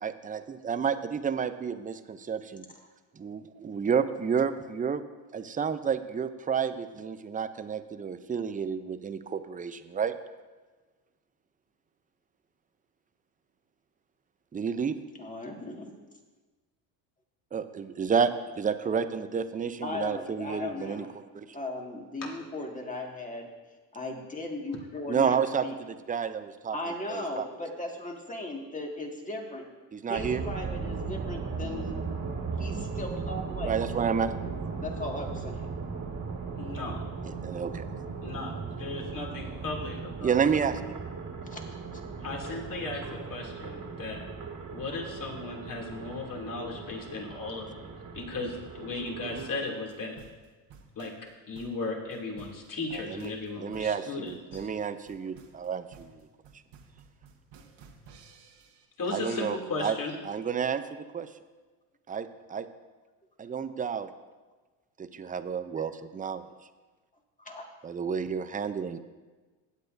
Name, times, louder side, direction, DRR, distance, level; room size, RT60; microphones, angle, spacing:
voice 1, 0.0-2.6 3.2-5.0 5.3-10.1 14.5-14.9 17.5-21.0 21.3-21.5 25.1-26.8 27.1-27.4 29.9-30.4 33.6-34.4 37.2-37.8 40.2-41.0 52.9-53.3 53.6-56.2 59.1-60.0 60.2-60.8 61.1-61.3 62.1-62.7 63.4-64.1 65.0-66.4 67.8-69.0, right 6 dB, 15° right, 11 dB, 0.6 m, -30 dB
voice 2, 15.2-15.9 19.8-21.1 21.5-23.5 23.9-25.7 26.7-29.7 30.1-32.0 32.6-33.7 34.8-35.7 41.5-41.6 67.4-67.7, left 2 dB, 15° left, 1 dB, 1.9 m, -37 dB
sound 1, 30.2-49.5, right 5 dB, 40° right, 2.1 m, -37 dB
voice 3, 36.6-37.0 38.2-38.5 38.8-40.3 42.2-44.2 44.7-50.2 51.0-51.1 51.5-54.7 59.0-60.2, left 3 dB, 40° left, -1 dB, 2.7 m, -36 dB
sound 2, 49.3-58.8, right 5 dB, 60° right, 1.7 m, -54 dB
16.0 x 8.3 x 2.6 m, 1.3 s
supercardioid pair, 80°, 50 cm